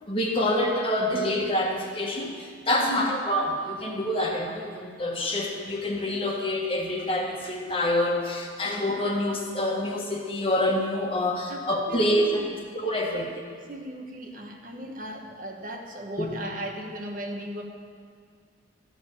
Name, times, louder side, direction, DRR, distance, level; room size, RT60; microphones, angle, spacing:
voice 1, 0.0-12.4 12.7-13.3 16.2-16.3, left 1 dB, 30° left, 0 dB, 1.6 m, -27 dB
voice 2, 2.8-3.1 11.5-12.6 13.1-13.2 13.7-17.6, equal, 45° right, 2 dB, 1.3 m, -37 dB
14.0 x 7.0 x 9.1 m, 2.2 s
head